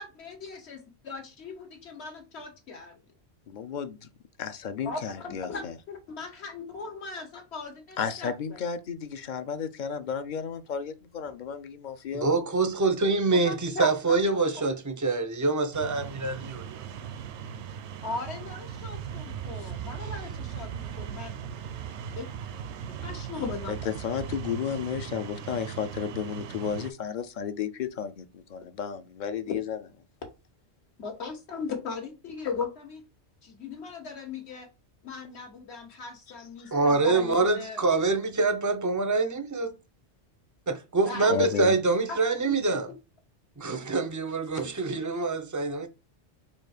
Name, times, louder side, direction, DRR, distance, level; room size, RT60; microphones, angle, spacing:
voice 1, 0.0-3.0 4.8-8.6 13.3-14.4 18.0-21.3 22.1-22.2 22.9-23.7 31.0-33.0 33.4-34.7 35.0-37.8 41.0-41.6 42.1-42.5, left 4 dB, 70° left, 1.5 m, -38 dB
voice 2, 3.5-4.1 4.4-5.7 8.0-12.3 19.6-19.7 23.4-29.8 36.6-36.8 41.3-41.7, left 7 dB, 55° left, 0.6 m, -33 dB
voice 3, 12.1-16.8 36.7-39.7 40.7-42.9 43.6-45.9, right 3 dB, 25° right, 0.4 m, -25 dB
sound 1, 15.7-26.9, right 8 dB, 80° right, 0.8 m, -38 dB
4.2 x 2.6 x 4.9 m
omnidirectional pair, 1.2 m